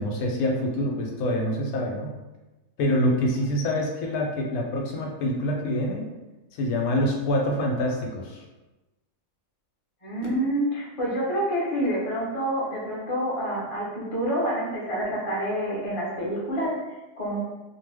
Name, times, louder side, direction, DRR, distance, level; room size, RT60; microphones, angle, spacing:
voice 1, 0.0-2.2 2.8-6.1 6.6-8.4, left 1 dB, 75° left, 0 dB, 1.0 m, -26 dB
voice 2, 10.0-17.4, right 1 dB, 40° left, -5 dB, 0.5 m, -28 dB
2.6 x 2.1 x 3.3 m, 1.1 s
omnidirectional pair, 1.6 m